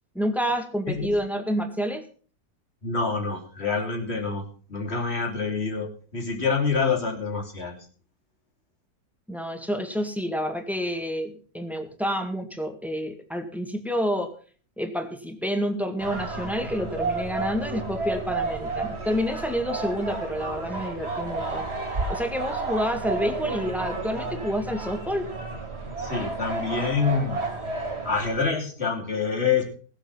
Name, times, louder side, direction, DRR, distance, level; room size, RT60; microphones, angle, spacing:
voice 1, 0.2-2.0 9.3-14.3 14.8-25.3, equal, ahead, 6 dB, 1.8 m, -29 dB
voice 2, 2.8-4.4 4.7-7.9 26.0-27.6 28.1-29.6, left 5 dB, 40° left, 1 dB, 3.4 m, -26 dB
sound 1, 16.0-28.4, right 3 dB, 40° right, 2.5 m, -31 dB
19.0 x 7.2 x 5.7 m, 0.42 s
omnidirectional pair, 1.7 m